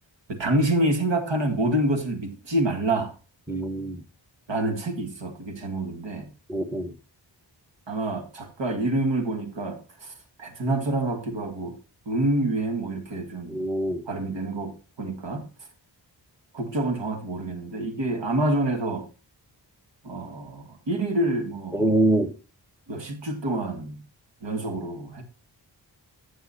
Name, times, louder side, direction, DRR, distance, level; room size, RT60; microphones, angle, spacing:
voice 1, 0.3-3.1 4.5-6.3 7.9-10.1 10.4-11.8 12.1-13.6 14.1-15.5 16.5-19.1 20.0-21.9 22.9-24.0 24.4-25.2, right 1 dB, 70° right, 1.9 m, -27 dB
voice 2, 3.5-4.0 6.5-6.9 13.5-14.0 21.7-22.3, right 1 dB, 5° right, 1.2 m, -24 dB
15.0 x 6.3 x 2.7 m
cardioid pair, 50°, 46 cm